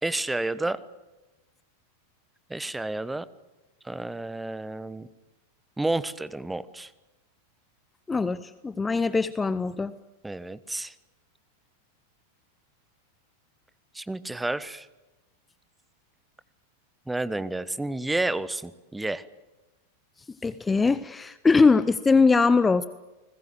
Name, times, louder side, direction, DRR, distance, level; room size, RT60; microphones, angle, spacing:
voice 1, 0.0-0.8 2.5-3.2 3.8-5.1 5.8-6.9 10.2-10.9 13.9-14.9 17.1-19.2, right 2 dB, 5° right, 16 dB, 1.1 m, -30 dB
voice 2, 8.1-10.0 20.4-22.9, left 4 dB, 15° left, 15 dB, 0.8 m, -21 dB
30.0 x 20.5 x 7.9 m, 1.1 s
figure-of-eight pair, 90°, 0 cm